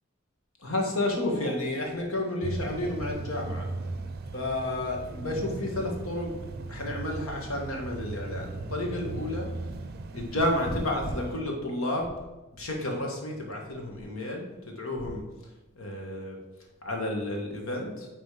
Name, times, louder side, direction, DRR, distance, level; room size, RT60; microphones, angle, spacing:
voice 1, 0.6-3.7 4.3-6.3 6.7-9.5 10.1-12.1 12.6-15.2 15.7-16.4 16.8-18.1, left 1 dB, 80° left, 1 dB, 1.6 m, -31 dB
sound 1, 2.4-11.4, right 2 dB, 50° right, 0.5 m, -37 dB
8.5 x 4.2 x 4.9 m, 1.1 s
head